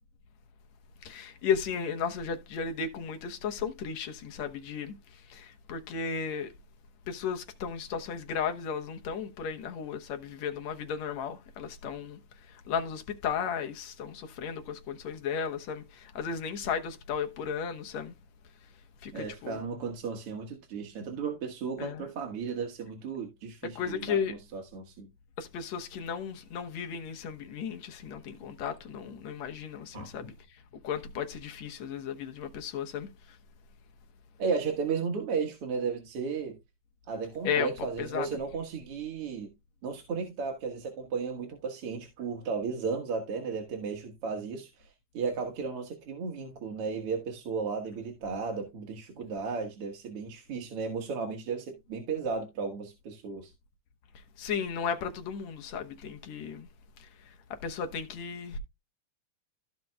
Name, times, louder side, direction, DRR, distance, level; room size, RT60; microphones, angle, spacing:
voice 1, 1.0-5.0 5.3-6.5 7.1-12.2 12.7-18.1 19.0-19.6 21.8-22.1 23.8-24.3 25.4-30.3 30.8-33.1 37.5-37.7 38.0-38.3 54.4-56.7 57.6-58.6, left 7 dB, 70° left, 2.3 m, -34 dB
voice 2, 19.1-25.1 29.9-30.1 34.4-36.6 37.1-39.5 39.8-53.5, right 5 dB, 55° right, 2.2 m, -34 dB
15.5 x 5.3 x 2.3 m
omnidirectional pair, 3.3 m